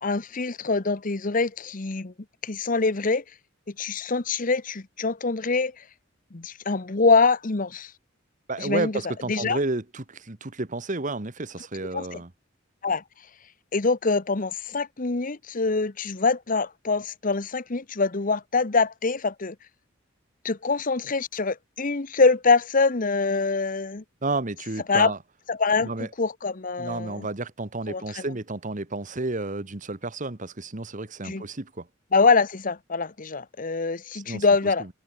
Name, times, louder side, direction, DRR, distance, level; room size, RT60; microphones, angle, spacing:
voice 1, 0.0-2.1 2.4-3.2 3.8-5.7 6.3-7.9 8.6-8.9 9.3-9.6 11.9-12.2 12.8-13.0 13.7-19.5 20.4-24.0 24.9-25.1 25.5-25.9 26.2-27.3 27.9-28.0 31.2-31.4 32.1-34.8, left 4 dB, 40° left, 1.0 m, -24 dB
voice 2, 8.5-12.3 24.2-25.2 25.8-26.1 26.8-31.9 34.1-34.4 34.8-34.9, right 2 dB, 40° right, 1.5 m, -31 dB
head